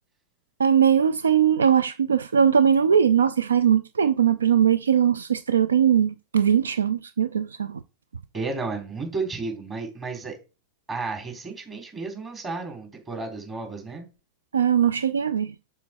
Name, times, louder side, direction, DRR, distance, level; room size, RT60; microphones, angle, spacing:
voice 1, 0.6-7.8 14.5-15.5, right 8 dB, 70° right, 0.4 m, -20 dB
voice 2, 8.3-10.4 10.9-14.0, right 3 dB, 25° right, 3.7 m, -32 dB
7.3 x 6.9 x 4.3 m
figure-of-eight pair, 90°, 0 cm